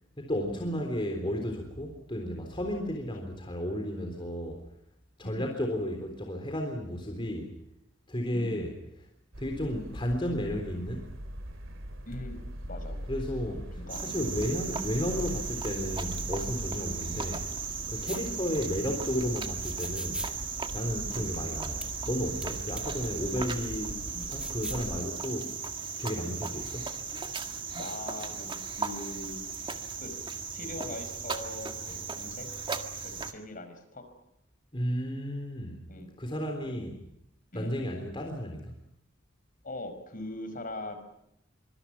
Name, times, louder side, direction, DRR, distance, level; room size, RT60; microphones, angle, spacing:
voice 1, 0.2-4.6 5.2-7.5 8.1-8.7 9.4-11.1 13.1-13.7 14.0-17.5 17.9-20.2 20.7-24.0 24.3-25.5 26.0-26.9 34.7-35.8 36.2-37.0 37.5-38.7, equal, 25° left, 3 dB, 3.7 m, -33 dB
voice 2, 8.3-8.7 12.1-13.0 13.5-14.2 18.3-18.6 21.1-21.5 22.8-23.1 24.1-24.3 25.0-25.1 26.1-26.4 27.7-29.4 30.0-30.1 30.5-32.5 33.0-34.0 35.9-36.1 37.5-37.8 39.6-41.0, left 1 dB, 45° left, 8 dB, 5.2 m, -41 dB
sound 1, 9.3-25.0, equal, 90° right, 2.7 m, -41 dB
Cricket, 13.9-33.3, right 5 dB, 25° right, 1.8 m, -37 dB
sound 2, 18.1-18.2 19.6-20.3 21.8-21.9 22.4-22.5 22.8-22.9 24.2-24.8, right 1 dB, 5° right, 2.2 m, -38 dB
25.0 x 25.0 x 6.0 m, 0.79 s
head